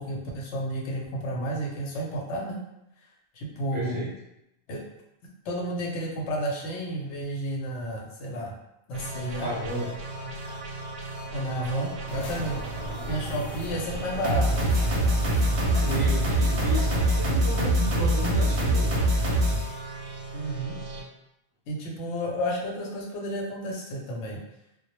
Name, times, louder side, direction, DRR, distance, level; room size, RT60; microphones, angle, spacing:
voice 1, 0.0-2.6 3.3-4.0 4.7-4.8 5.5-8.5 8.9-9.5 11.3-12.6 13.1-14.7 20.3-20.8 21.7-24.4, right 1 dB, 80° left, -1 dB, 0.9 m, -31 dB
voice 2, 3.7-4.1 9.3-9.9 10.4-10.6 15.5-19.0, equal, 30° right, -4 dB, 0.4 m, -33 dB
sound 1, 8.9-21.0, right 1 dB, 65° right, 0.7 m, -26 dB
sound 2, 12.1-17.2, right 1 dB, 45° left, 0.5 m, -37 dB
2.0 x 2.0 x 2.9 m, 0.84 s
omnidirectional pair, 1.2 m